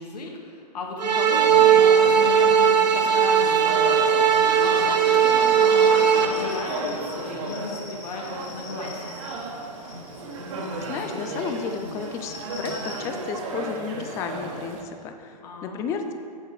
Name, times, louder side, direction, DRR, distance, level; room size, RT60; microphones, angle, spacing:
voice 1, 0.0-9.2 15.4-15.9, left 3 dB, 70° left, 0 dB, 1.6 m, -36 dB
sound 1, 1.0-6.2, right 7 dB, 80° right, 0.8 m, -18 dB
sound 2, 1.3-14.8, right 2 dB, 50° right, 1.3 m, -34 dB
sound 3, 4.3-13.0, left 3 dB, 30° left, 1.5 m, -45 dB
voice 2, 10.8-16.1, left 5 dB, 15° left, 6 dB, 0.3 m, -33 dB
8.5 x 7.4 x 3.1 m, 2.3 s
hypercardioid pair, 125°, 21 cm